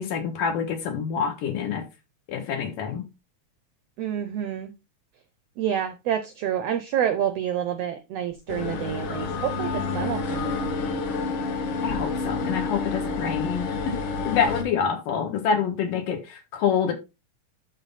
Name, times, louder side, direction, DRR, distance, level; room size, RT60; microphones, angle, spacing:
voice 1, 0.0-1.9 2.3-3.0 11.8-14.0 14.2-16.9, left 7 dB, 85° left, 3.3 m, -26 dB
voice 2, 4.0-4.7 5.6-10.7, right 10 dB, 80° right, 1.4 m, -28 dB
sound 1, 8.5-14.6, left 4 dB, 60° left, 1.4 m, -29 dB
11.5 x 4.1 x 4.0 m
omnidirectional pair, 3.7 m